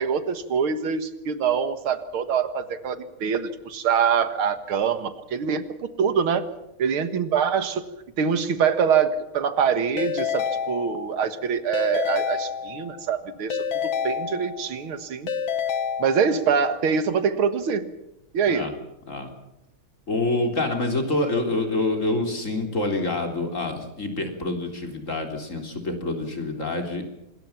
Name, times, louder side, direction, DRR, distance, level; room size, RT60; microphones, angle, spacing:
voice 1, 0.0-6.5 6.8-7.9 8.2-15.3 16.0-17.9 18.3-18.7, right 6 dB, 80° right, 11 dB, 2.3 m, -24 dB
Keyboard (musical) / Ringtone, 10.0-11.3 11.7-13.1 13.5-14.8 15.3-16.6, left 7 dB, 70° left, 2.1 m, -29 dB
voice 2, 20.1-27.0, left 2 dB, 35° left, 4 dB, 3.9 m, -26 dB
26.0 x 21.0 x 5.9 m, 0.91 s
omnidirectional pair, 2.3 m